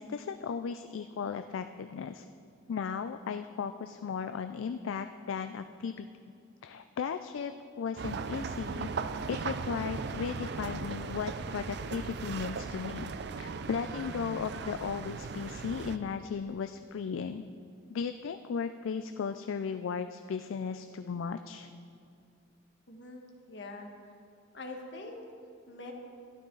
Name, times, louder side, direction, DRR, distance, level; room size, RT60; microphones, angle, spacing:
voice 1, 0.0-2.3 2.7-6.1 6.6-8.9 9.3-13.1 13.4-17.4 17.9-21.7, left 6 dB, 75° left, 9 dB, 0.4 m, -36 dB
sound 1, 8.0-16.0, right 5 dB, 55° right, 0.4 m, -38 dB
voice 2, 22.9-23.2 23.5-23.9 24.5-25.2 25.7-25.9, left 2 dB, 60° left, 2 dB, 1.4 m, -43 dB
13.0 x 11.5 x 3.9 m, 2.4 s
head